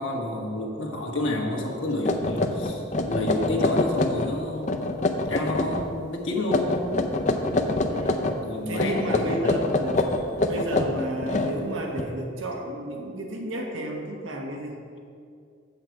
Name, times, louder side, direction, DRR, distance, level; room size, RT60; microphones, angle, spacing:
voice 1, 0.0-4.9 5.3-6.8 8.4-9.5, left 1 dB, 70° left, 0 dB, 1.4 m, -30 dB
sound 1, 1.6-1.7 2.0-4.3 4.6-5.9 6.4-8.4 8.7-12.0, left 2 dB, 40° left, 0.5 m, -25 dB
voice 2, 7.2-8.4 8.7-10.1 10.4-14.8, right 1 dB, 85° right, 1 dB, 1.3 m, -32 dB
8.4 x 7.5 x 4.6 m, 2.4 s
head